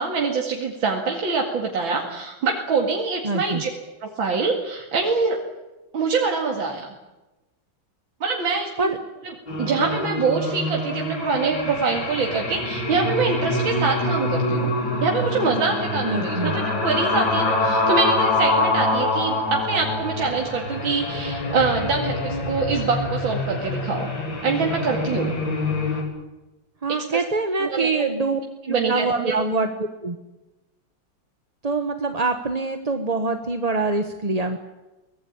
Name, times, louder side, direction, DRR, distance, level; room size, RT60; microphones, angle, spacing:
voice 1, 0.0-3.7 4.0-5.4 5.9-6.9 8.2-8.9 9.6-14.7 15.0-24.1 24.4-25.3 26.9-27.2 27.6-28.1 28.7-29.4, right 4 dB, 85° right, 0 dB, 3.0 m, -24 dB
voice 2, 3.2-3.6 8.8-9.0 16.0-16.5 26.8-28.4 28.7-30.2 31.6-34.6, right 3 dB, 25° right, 7 dB, 1.0 m, -24 dB
sound 1, 9.5-26.0, left 2 dB, 80° left, 4.7 m, -25 dB
23.5 x 20.0 x 8.7 m, 1.1 s
omnidirectional pair, 2.1 m